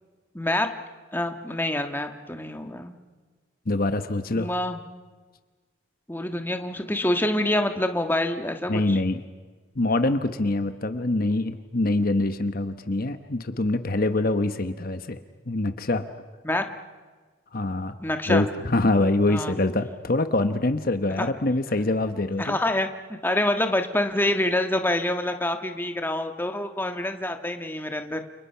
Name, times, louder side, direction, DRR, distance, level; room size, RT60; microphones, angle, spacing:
voice 1, 0.3-0.7 1.1-3.0 4.3-4.8 6.1-9.0 16.4-16.6 18.0-18.5 19.3-19.6 21.2-21.3 22.4-28.2, left 1 dB, 10° left, 6 dB, 1.5 m, -26 dB
voice 2, 3.7-4.5 8.7-9.2 9.8-15.2 15.5-16.1 17.5-18.0 18.3-22.6, left 2 dB, 45° left, 9 dB, 1.0 m, -24 dB
29.5 x 29.0 x 5.7 m, 1.4 s
head